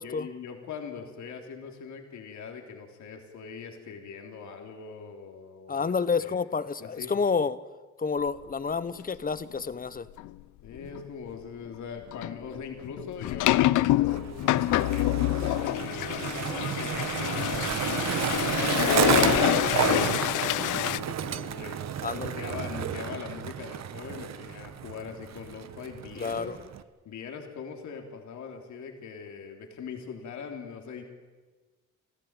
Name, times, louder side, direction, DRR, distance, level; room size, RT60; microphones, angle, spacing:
voice 1, 0.0-5.9 6.2-6.4 6.8-7.2 10.6-26.6 27.0-31.0, left 6 dB, 70° left, 3 dB, 3.4 m, -41 dB
voice 2, 5.7-7.6 8.0-10.1 22.0-22.4 26.2-26.6, left 5 dB, 30° left, 16 dB, 1.1 m, -29 dB
sound 1, 10.2-10.3 10.8-11.0 12.1-21.0, left 16 dB, 85° left, 0.6 m, -26 dB
Skateboard, 14.1-26.8, right 9 dB, 60° right, 1.2 m, -31 dB
28.0 x 14.5 x 9.0 m, 1.3 s
cardioid pair, 90°, 30 cm